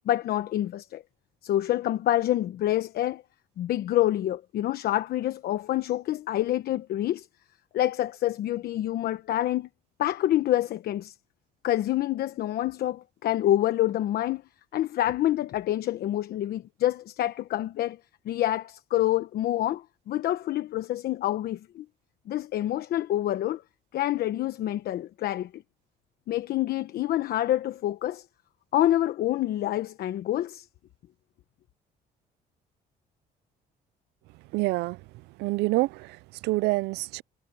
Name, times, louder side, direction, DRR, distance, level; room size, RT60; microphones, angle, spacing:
voice 1, 0.0-1.0 1.4-3.2 3.6-7.3 7.7-9.7 10.0-11.1 11.6-14.4 14.7-18.0 18.2-21.9 22.3-23.6 23.9-25.6 26.3-28.2 28.7-30.7, left 13 dB, 65° left, 1.1 m, -27 dB
voice 2, 34.5-35.1 35.4-37.2, right 22 dB, 85° right, 0.4 m, -27 dB
cardioid pair, 110°, 17 cm